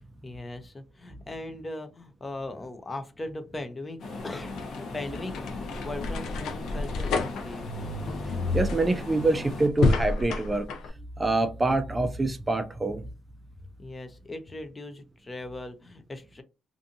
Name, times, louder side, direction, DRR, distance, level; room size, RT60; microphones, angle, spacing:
voice 1, 0.2-7.7 13.8-16.4, left 2 dB, 25° left, 0.6 m, -39 dB
sound 1, 4.0-9.7, left 3 dB, 65° left, 0.9 m, -39 dB
sound 2, 4.3-10.9, left 3 dB, 80° left, 0.5 m, -30 dB
voice 2, 8.5-10.7 11.2-13.1, right 2 dB, 20° right, 0.4 m, -25 dB
2.5 x 2.5 x 2.7 m
cardioid pair, 90°, 0 cm